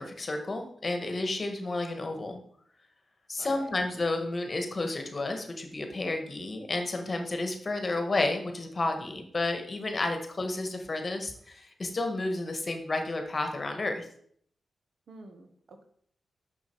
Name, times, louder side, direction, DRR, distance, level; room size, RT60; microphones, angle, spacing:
voice 1, 0.0-2.4 3.3-14.0, left 2 dB, 40° left, 5 dB, 1.5 m, -31 dB
voice 2, 3.4-3.7 15.1-15.8, right 2 dB, 70° right, 6 dB, 1.1 m, -49 dB
6.4 x 5.7 x 4.5 m, 0.62 s
cardioid pair, 55°, 0 cm